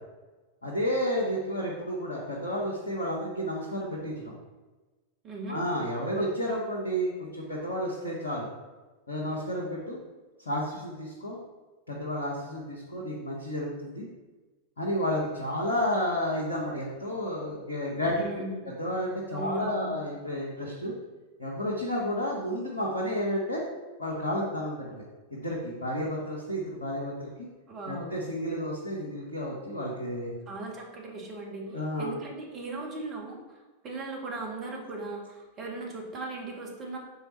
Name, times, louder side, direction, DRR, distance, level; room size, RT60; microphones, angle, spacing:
voice 1, 0.6-4.3 5.5-8.5 9.1-10.0 10.4-11.4 11.9-14.1 14.8-18.4 18.8-20.9 21.4-23.6 24.0-25.0 25.3-27.5 27.9-30.4 31.7-32.2, equal, 80° left, -4 dB, 1.2 m, -31 dB
voice 2, 5.2-5.6 18.2-18.7 19.3-20.0 27.7-28.1 30.5-33.6 33.8-37.0, right 2 dB, 30° right, -1 dB, 1.8 m, -38 dB
7.1 x 4.5 x 4.1 m, 1.2 s
figure-of-eight pair, 90°, 0 cm